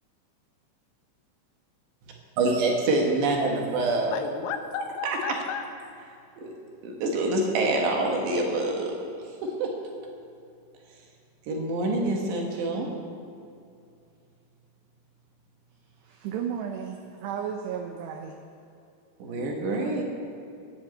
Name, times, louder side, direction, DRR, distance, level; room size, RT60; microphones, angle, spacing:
voice 1, 2.4-4.1 5.0-5.2 6.4-6.5 6.8-8.9 9.4-9.7 11.5-12.9 19.2-20.0, right 2 dB, 65° right, 0 dB, 3.2 m, -26 dB
voice 2, 4.1-5.6 19.3-20.0, left 8 dB, 80° left, 6 dB, 3.2 m, -35 dB
voice 3, 16.0-18.3 19.7-19.8, right 8 dB, 85° right, 4 dB, 2.4 m, -34 dB
11.0 x 10.0 x 8.3 m, 2.5 s
omnidirectional pair, 5.8 m